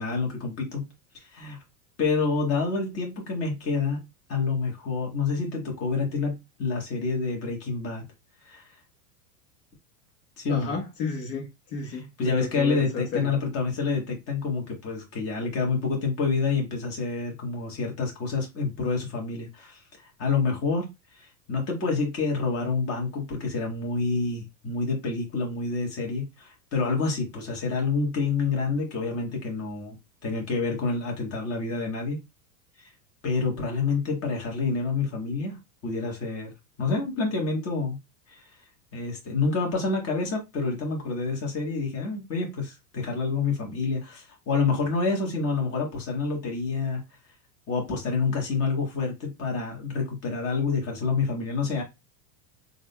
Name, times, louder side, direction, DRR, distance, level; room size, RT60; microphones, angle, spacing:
voice 1, 0.0-1.6 2.0-8.0 8.4-8.7 10.4-10.7 11.9-20.9 21.1-30.0 30.2-32.2 32.8-32.9 33.2-36.5 36.8-38.0 38.3-38.5 38.9-47.0 47.7-51.8, left 4 dB, 30° left, 1.4 m, -28 dB
voice 2, 10.5-13.3, left 4 dB, 65° left, 1.2 m, -33 dB
3.5 x 2.6 x 2.2 m
supercardioid pair, 120°, 47 cm